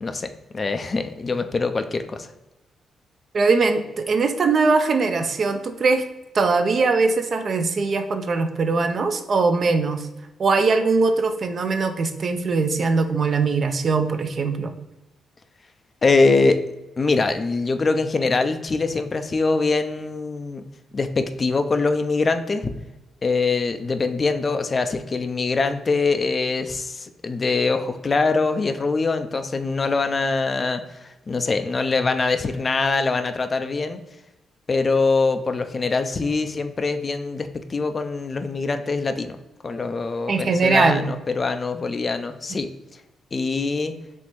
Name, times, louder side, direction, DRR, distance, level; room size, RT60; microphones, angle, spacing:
voice 1, 0.0-2.3 16.0-16.6 17.0-20.6 20.9-22.7 23.2-34.0 34.7-39.4 39.6-42.7 43.3-43.9, left 3 dB, 40° left, 9 dB, 0.4 m, -23 dB
voice 2, 3.3-6.0 6.3-10.1 10.4-14.7 40.3-41.1, right 4 dB, 55° right, 7 dB, 0.4 m, -21 dB
4.3 x 3.1 x 3.0 m, 1.0 s
supercardioid pair, 55°, 0 cm